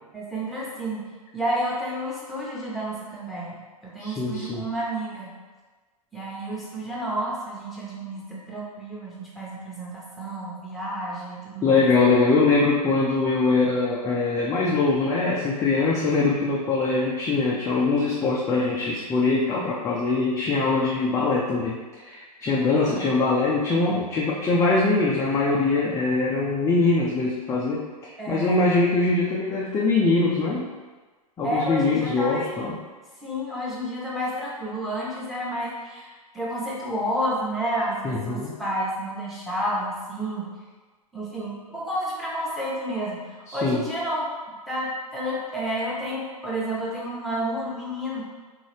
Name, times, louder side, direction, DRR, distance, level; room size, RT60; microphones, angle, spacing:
voice 1, 0.1-1.1 1.3-3.6 3.8-5.3 6.1-11.9 22.6-23.0 28.2-28.6 31.4-32.4 33.2-40.5 41.1-44.2 44.7-48.2, equal, ahead, -6 dB, 1.1 m, -30 dB
voice 2, 4.0-4.7 11.6-30.7 31.4-32.8 38.0-38.5 43.5-43.8, left 3 dB, 15° left, -4 dB, 0.5 m, -22 dB
3.8 x 3.3 x 3.3 m, 1.3 s
figure-of-eight pair, 105°, 20 cm